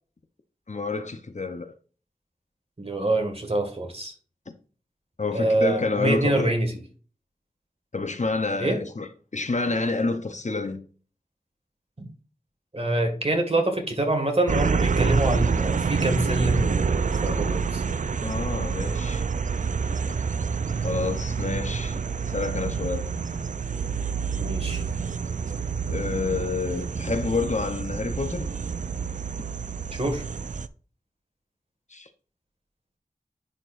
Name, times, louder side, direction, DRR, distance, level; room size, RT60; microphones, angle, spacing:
voice 1, 0.7-1.7 5.2-6.6 7.9-10.8 18.2-19.3 20.8-23.1 25.9-28.5 31.9-32.1, left 3 dB, 50° left, 0.7 m, -28 dB
voice 2, 2.8-4.1 5.3-6.7 8.6-8.8 12.0-12.1 12.7-16.9 17.2-17.8 24.4-24.8 29.9-30.2, right 1 dB, 40° right, 1.8 m, -25 dB
sound 1, 14.5-30.7, right 5 dB, 55° right, 0.4 m, -27 dB
10.0 x 4.4 x 2.5 m
wide cardioid pair, 50°, 15 cm